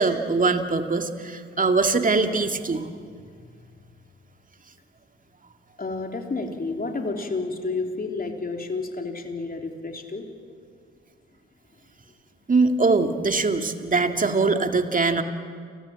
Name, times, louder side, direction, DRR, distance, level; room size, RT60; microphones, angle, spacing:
voice 1, 0.0-2.9 12.5-15.2, right 3 dB, 25° right, 6 dB, 2.4 m, -22 dB
voice 2, 5.8-10.3, left 3 dB, 30° left, 3 dB, 3.6 m, -30 dB
29.0 x 19.5 x 8.9 m, 2.1 s
hypercardioid pair, 45°, 30 cm